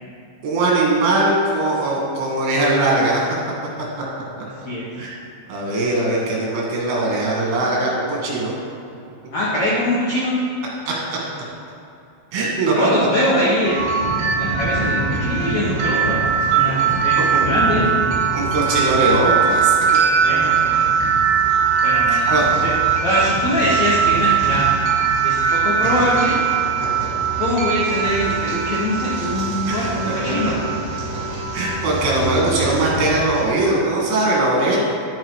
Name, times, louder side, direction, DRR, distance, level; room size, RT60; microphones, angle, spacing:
voice 1, 0.4-3.3 5.0-5.1 5.5-8.5 10.9-11.0 12.3-12.9 15.9-16.0 16.9-17.0 18.3-19.7 22.1-22.6 27.0-27.1 29.7-29.8 30.5-30.6 31.5-34.8, right 2 dB, 70° right, -4 dB, 4.4 m, -20 dB
voice 2, 9.3-10.4 12.7-13.8 14.4-16.2 16.5-17.9 20.2-20.8 21.8-22.7 23.0-24.8 25.2-26.4 27.4-30.6, left 1 dB, 85° left, -7 dB, 1.5 m, -22 dB
sound 1, 13.6-33.4, right 6 dB, 55° right, 2.5 m, -20 dB
11.5 x 7.7 x 4.8 m, 2.7 s
omnidirectional pair, 5.9 m